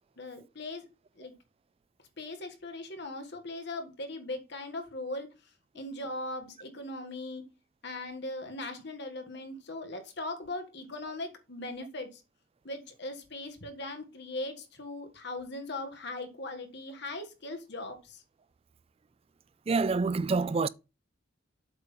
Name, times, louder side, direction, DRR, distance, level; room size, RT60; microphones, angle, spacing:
voice 1, 0.2-0.8 1.2-1.3 2.2-5.3 5.7-7.5 7.8-12.2 12.6-18.2, left 2 dB, 55° left, 1.6 m, -39 dB
voice 2, 19.7-20.7, right 4 dB, 30° right, 0.3 m, -27 dB
7.8 x 3.7 x 5.6 m
head